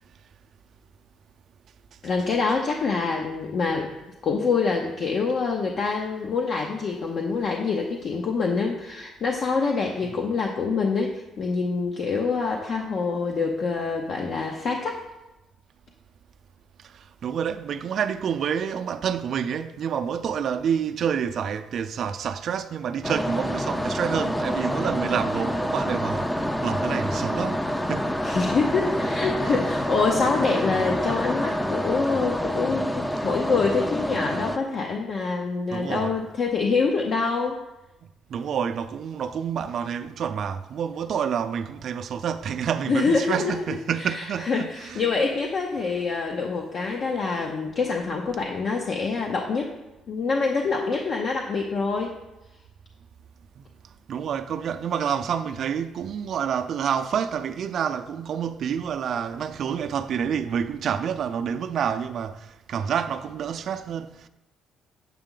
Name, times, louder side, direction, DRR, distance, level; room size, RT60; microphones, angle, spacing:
voice 1, 2.0-3.9 4.2-15.0 28.2-37.6 42.9-49.7 50.1-52.2, left 4 dB, 55° left, 0.8 m, -26 dB
voice 2, 14.1-14.4 16.8-28.1 35.7-36.2 38.3-45.0 53.6-53.7 54.1-64.3, right 7 dB, 60° right, 0.4 m, -28 dB
sound 1, 23.0-34.6, equal, 10° left, 0.5 m, -27 dB
8.1 x 7.5 x 3.8 m
cardioid pair, 95°, 0 cm